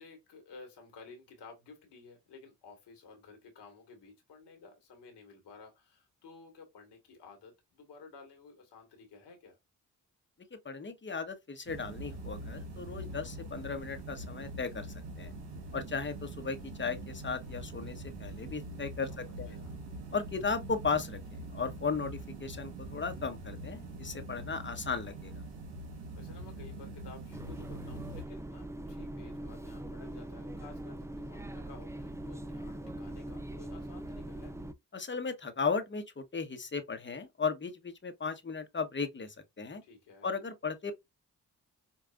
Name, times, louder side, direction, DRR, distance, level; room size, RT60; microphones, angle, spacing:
voice 1, 0.0-9.6 19.1-19.8 26.1-34.5 39.8-40.3, left 4 dB, 75° left, 1.5 m, -54 dB
voice 2, 10.6-15.3 15.7-19.5 20.1-21.2 21.5-25.4 34.9-39.8 40.2-40.9, left 5 dB, 25° left, 1.0 m, -36 dB
sound 1, 11.7-28.2, right 2 dB, 70° right, 1.5 m, -44 dB
sound 2, 27.3-34.7, right 1 dB, 5° right, 0.5 m, -42 dB
5.2 x 2.3 x 2.4 m
hypercardioid pair, 40°, 42 cm